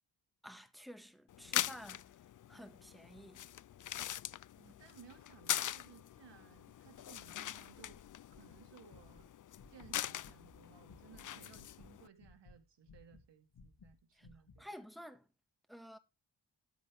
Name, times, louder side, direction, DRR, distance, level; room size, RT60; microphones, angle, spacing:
voice 1, 0.4-2.1 2.5-3.5 14.1-14.3 14.6-15.3 15.7-16.0, equal, ahead, 1.8 m, -52 dB
sound 1, 1.3-12.1, left 11 dB, 50° left, 0.4 m, -42 dB
voice 2, 4.6-8.0 8.3-9.3 9.7-14.7, right 8 dB, 80° right, 2.4 m, -60 dB
sound 2, 8.3-11.2 11.5-14.0 14.2-14.6, left 4 dB, 80° left, 3.8 m, -60 dB
13.5 x 4.9 x 5.2 m
cardioid pair, 75°, 42 cm